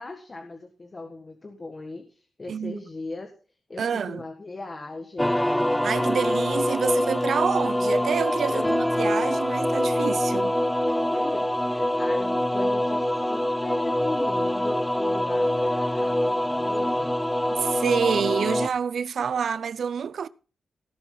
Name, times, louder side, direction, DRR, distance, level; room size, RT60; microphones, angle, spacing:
voice 1, 0.0-3.3 3.7-5.4 8.5-9.0 10.9-17.1, left 3 dB, 30° left, 1.6 m, -38 dB
voice 2, 2.5-2.8 3.8-4.2 5.8-10.6 17.5-20.3, right 7 dB, 70° right, 0.5 m, -27 dB
sound 1, 5.2-18.7, left 1 dB, 5° left, 0.4 m, -24 dB
18.0 x 7.3 x 3.9 m
cardioid pair, 100°, 0 cm